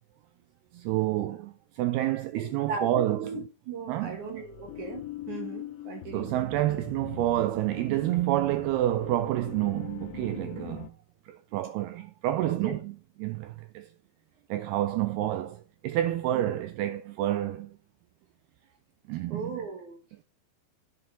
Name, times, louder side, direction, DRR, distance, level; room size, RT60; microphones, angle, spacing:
voice 1, 0.7-3.3 3.9-4.2 6.1-10.9 11.3-13.9 14.5-17.8 19.1-19.5, right 14 dB, 85° right, 2.3 m, -29 dB
voice 2, 2.3-6.3 12.4-12.8 16.3-16.4 19.3-20.2, right 4 dB, 60° right, 2.4 m, -38 dB
sound 1, 4.0-10.9, left 13 dB, 85° left, 3.0 m, -42 dB
10.0 x 7.4 x 5.3 m
omnidirectional pair, 5.0 m